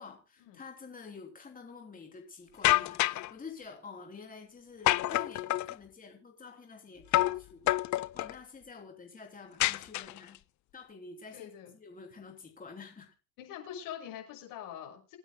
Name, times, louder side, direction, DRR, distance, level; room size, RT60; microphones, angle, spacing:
voice 1, 0.0-7.8 8.1-10.4 10.7-13.1, left 4 dB, 25° left, 1 dB, 3.3 m, -48 dB
sound 1, 2.6-3.3 4.9-5.7 7.1-7.4 7.7-8.3 9.6-10.4, left 16 dB, 60° left, 0.6 m, -27 dB
voice 2, 11.3-11.7 13.4-15.2, left 10 dB, 85° left, 1 dB, 6.5 m, -44 dB
27.5 x 9.6 x 2.2 m, 0.30 s
cardioid pair, 110°, 33 cm